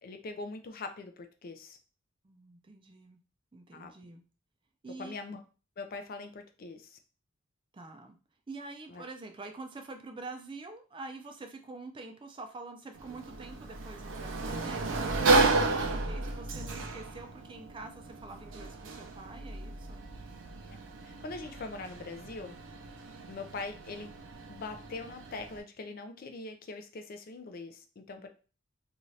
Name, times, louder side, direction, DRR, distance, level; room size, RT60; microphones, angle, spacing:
voice 1, 0.0-1.8 3.7-3.9 5.0-5.4 5.8-7.0 8.9-9.0 21.0-22.6 23.3-24.1 24.5-28.3, left 3 dB, 50° left, 7 dB, 0.4 m, -42 dB
voice 2, 2.2-3.2 3.5-4.2 4.8-5.2 7.7-8.2 8.5-20.0 28.1-28.3, right 3 dB, 25° right, 5 dB, 0.4 m, -46 dB
Sliding door, 13.0-25.6, right 3 dB, 85° right, 0.5 m, -33 dB
2.6 x 2.4 x 3.1 m, 0.35 s
head